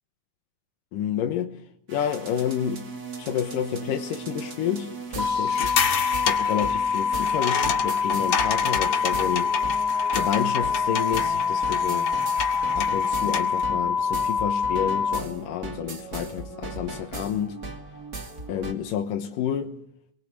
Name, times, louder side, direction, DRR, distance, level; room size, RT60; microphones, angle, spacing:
voice 1, 0.9-1.6 1.9-2.9 3.2-5.7 6.3-9.5 10.1-12.1 12.8-17.6 18.5-19.7, left 9 dB, 90° left, 2.9 m, -29 dB
sound 1, 1.9-18.7, right 3 dB, 30° right, 2.5 m, -38 dB
sound 2, 5.2-15.2, left 6 dB, ahead, 2.1 m, -25 dB
sound 3, 5.5-13.6, left 7 dB, 75° left, 3.6 m, -30 dB
24.0 x 21.5 x 8.4 m
omnidirectional pair, 3.7 m